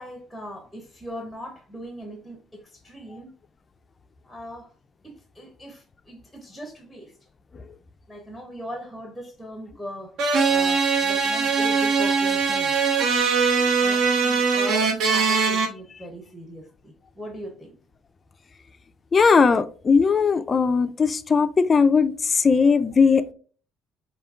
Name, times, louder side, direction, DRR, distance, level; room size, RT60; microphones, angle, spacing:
voice 1, 0.0-3.3 4.2-4.7 5.0-7.1 8.1-10.2 10.5-12.7 13.8-17.8, equal, 5° right, 0.8 m, -39 dB
sound 1, 10.2-15.7, right 5 dB, 65° right, 0.9 m, -21 dB
voice 2, 19.1-23.3, left 5 dB, 25° left, 0.3 m, -19 dB
5.0 x 2.7 x 3.5 m
cardioid pair, 160°, 0 cm